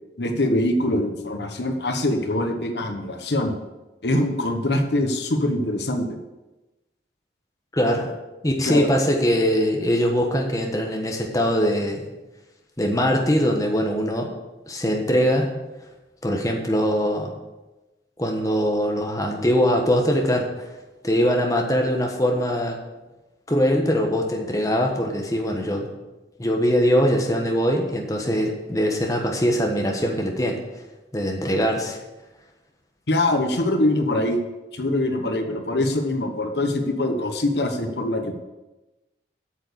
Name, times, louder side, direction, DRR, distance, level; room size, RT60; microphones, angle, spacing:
voice 1, 0.2-3.5 4.0-6.2 8.6-8.9 33.1-34.4 34.7-38.3, left 1 dB, 75° left, 5 dB, 1.1 m, -23 dB
voice 2, 7.7-8.1 8.4-12.0 12.8-14.3 14.7-15.5 16.2-17.3 18.2-20.7 21.0-22.8 23.5-25.9 26.4-30.6 31.1-32.0, equal, 20° left, 1 dB, 1.3 m, -22 dB
8.7 x 6.9 x 6.8 m, 1.1 s
head